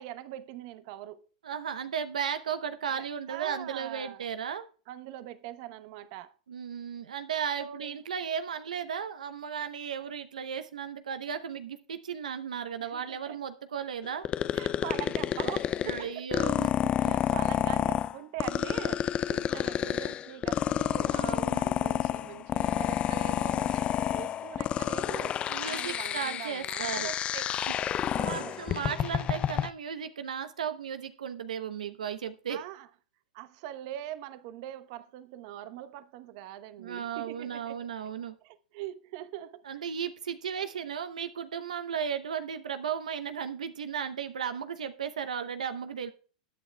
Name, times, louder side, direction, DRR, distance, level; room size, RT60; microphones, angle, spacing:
voice 1, 0.0-1.3 2.9-4.3 4.9-6.3 7.5-8.0 12.8-13.4 14.5-16.2 17.0-21.2 21.5-27.5 28.0-28.6 32.5-32.9 33.3-37.9 38.4-39.7, right 13 dB, 55° right, 0.9 m, -42 dB
voice 2, 1.4-4.7 6.5-14.3 15.8-16.7 17.0-17.1 21.1-21.6 25.5-27.1 27.9-32.6 36.8-38.3 39.7-46.1, right 7 dB, 85° right, 0.7 m, -35 dB
sound 1, 14.2-29.7, left 10 dB, 30° left, 0.4 m, -29 dB
20.5 x 8.7 x 2.2 m
hypercardioid pair, 115°, 4 cm